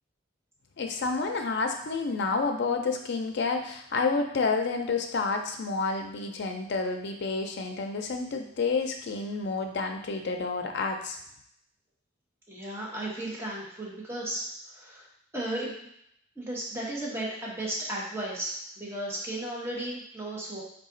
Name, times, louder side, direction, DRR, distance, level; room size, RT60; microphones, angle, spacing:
voice 1, 0.8-11.2, left 4 dB, 65° left, 4 dB, 0.5 m, -29 dB
voice 2, 12.5-15.1 15.3-15.7 16.4-20.6, right 1 dB, 15° right, -5 dB, 0.9 m, -35 dB
4.0 x 2.3 x 3.8 m, 0.72 s
head